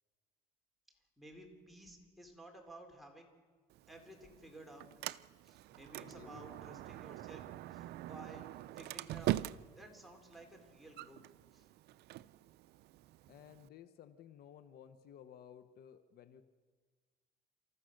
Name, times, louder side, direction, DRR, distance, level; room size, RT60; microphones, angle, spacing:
voice 1, 1.2-3.3 3.9-4.9 5.4-7.4 7.7-9.4 9.8-11.2 11.5-11.7, right 1 dB, ahead, 0 dB, 4.0 m, -55 dB
Sliding door, 3.7-13.7, right 15 dB, 75° right, 0.5 m, -44 dB
voice 2, 6.0-6.4 13.3-16.4, left 9 dB, 65° left, 11 dB, 1.0 m, -56 dB
29.5 x 14.0 x 6.6 m, 1.5 s
cardioid pair, 110°, 17 cm